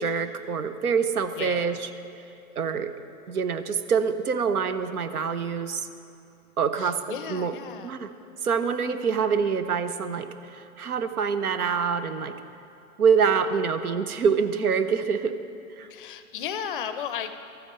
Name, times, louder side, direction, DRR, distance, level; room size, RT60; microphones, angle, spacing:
voice 1, 0.0-1.9 2.6-2.9 3.3-5.9 6.6-7.5 7.8-8.1 8.4-12.3 13.0-15.4 15.8-15.9, right 6 dB, 90° right, 11 dB, 0.7 m, -25 dB
voice 2, 1.4-1.8 6.8-8.0 15.9-17.4, left 8 dB, 40° left, 11 dB, 0.5 m, -35 dB
13.5 x 9.0 x 3.0 m, 2.6 s
hypercardioid pair, 130°, 43 cm